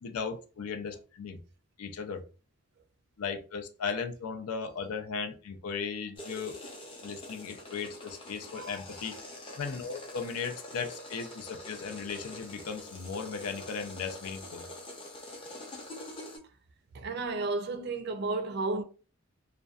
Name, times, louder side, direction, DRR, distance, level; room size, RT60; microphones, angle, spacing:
voice 1, 0.0-1.4 1.8-2.2 3.2-6.6 7.0-9.2 9.6-14.7, left 5 dB, 90° left, 0.4 m, -37 dB
sound 1, 6.2-16.4, left 1 dB, 25° left, 0.5 m, -45 dB
voice 2, 16.9-18.8, right 3 dB, 50° right, 0.4 m, -32 dB
2.5 x 2.1 x 2.3 m
head